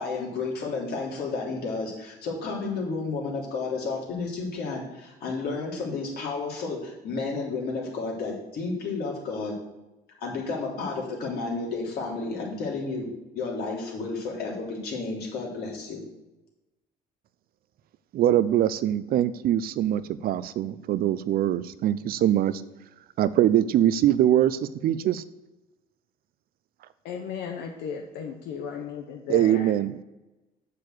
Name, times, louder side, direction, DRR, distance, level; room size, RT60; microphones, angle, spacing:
voice 1, 0.0-9.5 10.2-13.1 13.3-16.0, left 3 dB, 70° left, -2 dB, 3.6 m, -31 dB
voice 2, 18.1-22.6 23.2-25.2 29.3-30.0, right 11 dB, 60° right, 15 dB, 0.6 m, -23 dB
voice 3, 27.0-29.7, left 7 dB, 85° left, 3 dB, 1.0 m, -35 dB
6.8 x 6.7 x 7.9 m, 1.0 s
cardioid pair, 110°, 17 cm